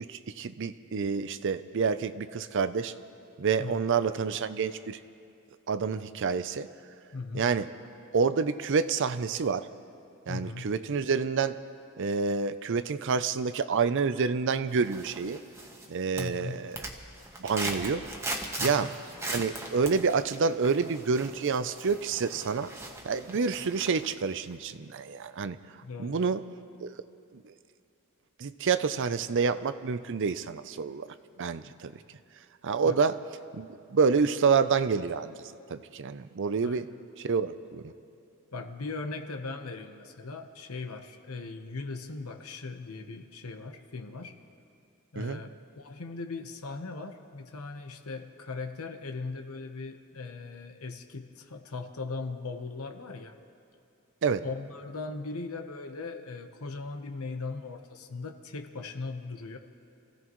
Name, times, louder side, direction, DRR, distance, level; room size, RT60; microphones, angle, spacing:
voice 1, 0.1-2.9 3.4-5.0 5.7-6.7 7.3-7.7 8.1-9.7 10.3-11.6 12.0-15.4 15.9-16.8 17.4-18.0 18.6-18.9 19.3-22.7 23.0-25.6 26.0-26.4 26.8-26.9 28.4-31.1 31.4-31.9 32.6-33.1 33.5-35.3 35.7-36.9 37.2-37.9 45.2-45.4 54.2-54.4, right 5 dB, 60° right, 13 dB, 0.5 m, -28 dB
voice 2, 7.1-7.5 10.3-10.7 16.2-16.6 18.6-18.9 25.8-26.2 31.6-32.0 32.8-33.0 36.6-36.9 38.5-44.3 45.1-53.3 54.4-59.6, left 3 dB, 85° left, 6 dB, 1.0 m, -39 dB
sound 1, 14.7-15.9 16.2-24.1 24.5-24.6, right 1 dB, 15° right, 1.3 m, -39 dB
28.5 x 16.0 x 3.1 m, 2.5 s
head